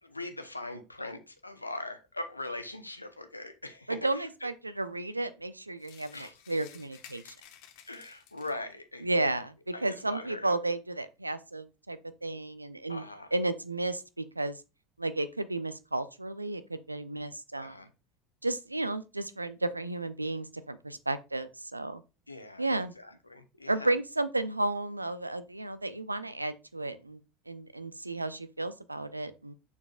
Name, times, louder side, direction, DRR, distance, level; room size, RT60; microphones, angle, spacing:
voice 1, 0.0-4.3 6.1-6.4 7.9-9.3 9.7-10.6 12.9-13.3 17.6-17.9 22.3-22.7 22.9-23.9, left 2 dB, 90° left, 0.7 m, -41 dB
voice 2, 3.9-7.3 9.0-13.0 13.3-14.6 15.0-17.8 18.4-22.0 22.6-22.9 23.7-27.2 27.5-29.5, right 2 dB, 90° right, 0.5 m, -33 dB
sound 1, 5.8-8.7, left 10 dB, 55° left, 1.0 m, -54 dB
7.0 x 6.8 x 2.4 m
figure-of-eight pair, 75°, 0 cm